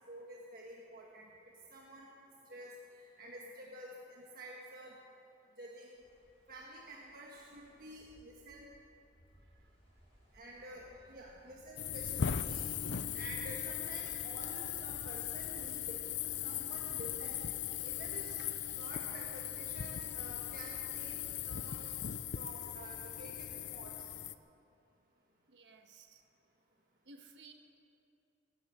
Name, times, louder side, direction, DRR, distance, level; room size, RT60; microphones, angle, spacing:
voice 1, 0.1-1.3 1.7-2.1 2.5-4.9 5.6-6.0 6.5-8.7 10.3-12.7 13.1-17.4 17.8-21.2 21.4-21.9 22.4-23.9, right 1 dB, 55° right, -2 dB, 1.5 m, -50 dB
sound 1, 5.9-21.0, equal, 35° left, 4.9 m, -66 dB
sound 2, 11.8-24.3, left 9 dB, 85° left, 0.6 m, -39 dB
voice 2, 25.5-26.2 27.0-27.5, right 3 dB, 75° right, 5 dB, 1.5 m, -57 dB
19.0 x 9.3 x 8.0 m, 2.6 s
head